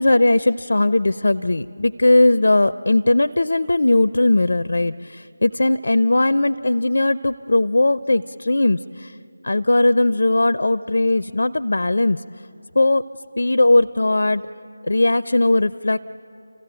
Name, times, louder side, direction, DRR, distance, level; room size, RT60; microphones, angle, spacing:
voice 1, 0.0-9.2 9.4-12.2 12.8-13.0 13.4-14.4 14.8-16.0, left 2 dB, 60° left, 14 dB, 0.5 m, -18 dB
27.5 x 16.0 x 9.0 m, 2.8 s
figure-of-eight pair, 160°, 0 cm